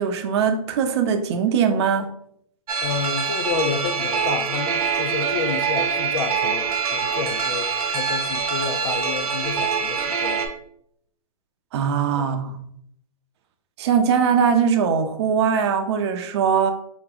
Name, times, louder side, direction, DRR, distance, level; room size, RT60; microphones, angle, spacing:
voice 1, 0.0-2.1 11.7-12.6 13.8-16.7, right 7 dB, 45° right, 0.6 m, -21 dB
sound 1, 2.7-10.5, right 6 dB, 80° right, 0.8 m, -24 dB
voice 2, 2.8-10.5 12.2-12.4, left 6 dB, 60° left, 0.6 m, -30 dB
4.2 x 2.9 x 3.7 m
hypercardioid pair, 150°, 19 cm